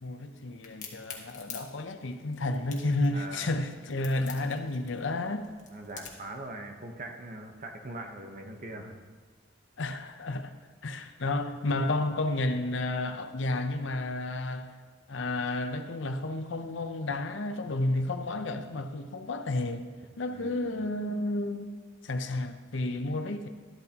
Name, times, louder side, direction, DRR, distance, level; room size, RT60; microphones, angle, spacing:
voice 1, 0.0-5.5 9.8-10.5 10.8-14.7 15.1-19.9 20.2-21.7 22.0-23.5, left 2 dB, 70° left, 8 dB, 0.7 m, -31 dB
Crack, 0.6-6.3, left 7 dB, 40° left, 1.5 m, -45 dB
voice 2, 3.1-3.6 5.7-8.9 20.3-20.8, right 2 dB, 40° right, 4 dB, 1.0 m, -42 dB
12.5 x 12.0 x 2.9 m, 1.5 s
head